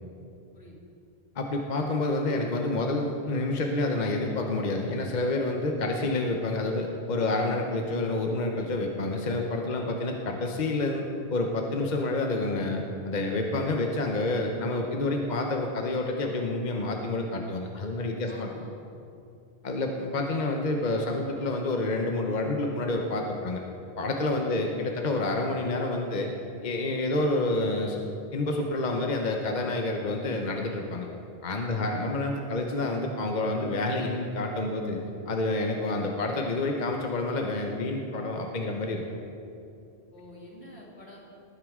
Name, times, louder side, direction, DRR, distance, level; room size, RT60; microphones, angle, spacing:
voice 1, 1.4-18.5 19.6-23.6 24.0-26.3 26.6-28.0 28.3-31.1 31.4-35.0 35.3-39.0, left 2 dB, 45° left, 2 dB, 0.9 m, -28 dB
voice 2, 18.3-18.7 31.8-32.1 40.1-41.2, left 1 dB, 75° left, -4 dB, 2.7 m, -48 dB
19.0 x 9.4 x 3.7 m, 2.6 s
omnidirectional pair, 1.1 m